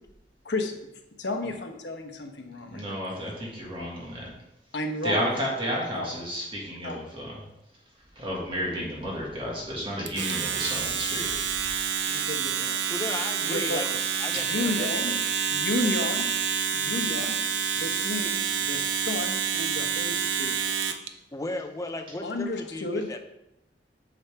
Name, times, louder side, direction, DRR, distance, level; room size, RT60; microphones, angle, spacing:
voice 1, 1.2-3.2 4.7-5.2 5.9-6.1 6.8-7.0 12.1-12.8 13.4-15.1 15.5-16.3 16.7-17.4 17.7-20.6 22.2-23.1, left 2 dB, 80° left, 4 dB, 1.0 m, -32 dB
voice 2, 2.6-4.3 5.0-7.4 8.1-11.4 14.3-14.5, equal, 30° right, -4 dB, 1.8 m, -32 dB
Domestic sounds home sounds, 10.1-21.1, right 7 dB, 85° right, 0.6 m, -28 dB
voice 3, 12.9-13.9 14.2-15.2 21.3-23.2, left 2 dB, 20° left, 5 dB, 0.7 m, -35 dB
8.8 x 6.0 x 3.4 m, 0.87 s
head